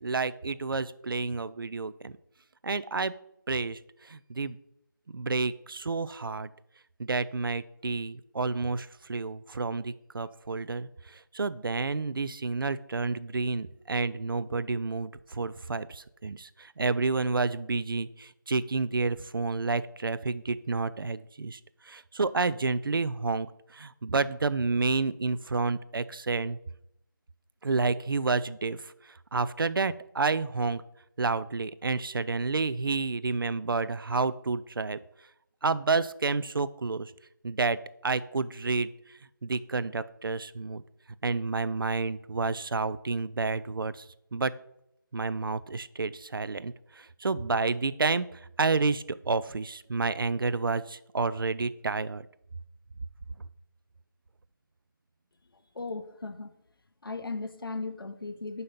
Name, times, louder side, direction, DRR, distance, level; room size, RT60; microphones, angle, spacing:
voice 1, 0.0-2.1 2.6-3.1 3.5-3.8 4.1-4.6 5.1-6.5 7.0-10.9 11.3-21.6 21.9-23.5 23.7-26.6 27.6-28.8 29.3-30.8 31.2-35.0 35.6-37.1 37.4-37.8 38.0-38.9 39.4-40.8 41.2-44.0 44.3-44.5 45.1-48.3 48.6-52.2, right 4 dB, 80° right, 16 dB, 0.4 m, -29 dB
voice 2, 55.7-56.5 57.0-58.6, left 3 dB, 85° left, 9 dB, 0.8 m, -36 dB
5.2 x 4.0 x 5.7 m, 0.78 s
figure-of-eight pair, 180°, 12 cm